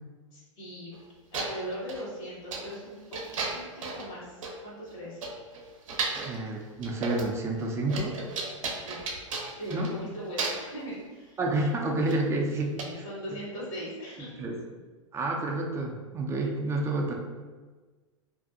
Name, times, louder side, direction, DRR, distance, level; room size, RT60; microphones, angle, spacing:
voice 1, 0.3-0.9 1.3-5.2 8.8-9.0 9.6-11.4 12.8-14.4, equal, 80° left, -6 dB, 1.3 m, -39 dB
sound 1, 0.9-1.0 1.3-2.0 2.5-2.8 3.1-4.1 4.4-4.6 4.9-5.0 5.2-6.4 6.8-7.4 7.6-10.0 10.4-10.8 12.1-12.2 12.8-12.9, right 3 dB, 75° right, 0.6 m, -34 dB
voice 2, 6.1-8.2 9.7-9.9 11.4-13.0 14.4-14.6 15.1-17.1, right 2 dB, 15° right, 1 dB, 0.4 m, -29 dB
2.6 x 2.2 x 2.5 m, 1.3 s
hypercardioid pair, 110°, 17 cm